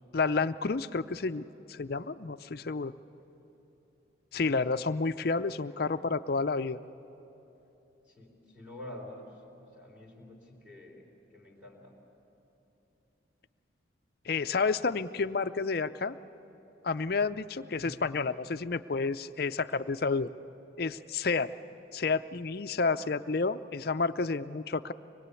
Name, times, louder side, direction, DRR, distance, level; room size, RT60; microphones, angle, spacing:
voice 1, 0.1-2.9 4.3-6.8 14.3-16.1 16.8-20.3 20.8-21.5 21.9-24.9, left 4 dB, 50° left, 10 dB, 0.5 m, -30 dB
voice 2, 8.1-9.2 9.6-11.1 11.3-12.0 17.8-18.0, left 1 dB, 10° right, -3 dB, 3.3 m, -48 dB
25.0 x 21.5 x 8.3 m, 3.0 s
head